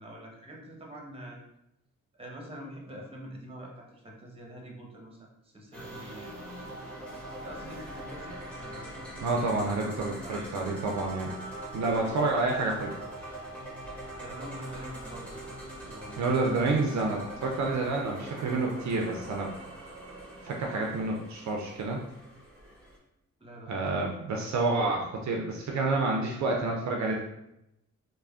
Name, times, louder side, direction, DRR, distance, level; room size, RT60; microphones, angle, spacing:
voice 1, 0.0-1.4 2.1-6.5 7.3-9.6 10.0-10.5 14.2-15.4 15.9-16.5 23.4-24.1, equal, 15° right, 0 dB, 0.9 m, -45 dB
sound 1, 5.7-23.0, right 1 dB, 5° left, 1.1 m, -42 dB
voice 2, 9.2-11.3 11.7-12.9 16.2-19.5 20.4-22.0 23.7-27.2, right 3 dB, 60° right, 0 dB, 0.5 m, -29 dB
3.2 x 2.1 x 2.3 m, 0.84 s
supercardioid pair, 45°, 33 cm